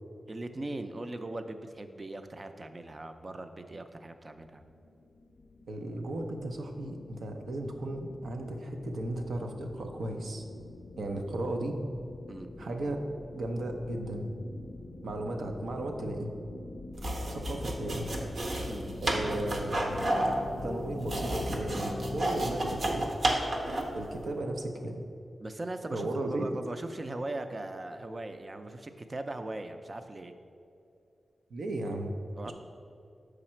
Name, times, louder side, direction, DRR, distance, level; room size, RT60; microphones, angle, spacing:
voice 1, 0.3-4.6 12.3-12.5 18.7-18.9 25.4-30.3 32.4-32.5, right 2 dB, 35° right, 8 dB, 0.4 m, -39 dB
sound 1, 4.5-22.8, left 2 dB, 80° left, 0.4 m, -44 dB
voice 2, 5.7-10.5 11.0-11.8 12.6-13.0 13.3-14.3 15.0-16.3 17.0-18.1 19.0-19.7 20.6-23.1 23.9-25.0 25.9-26.5 31.5-32.1 32.5-32.6, right 1 dB, 90° right, 4 dB, 0.6 m, -35 dB
sound 2, 16.9-24.0, right 1 dB, 55° right, 0.8 m, -31 dB
6.3 x 4.9 x 4.3 m, 2.6 s
wide cardioid pair, 95°, 0 cm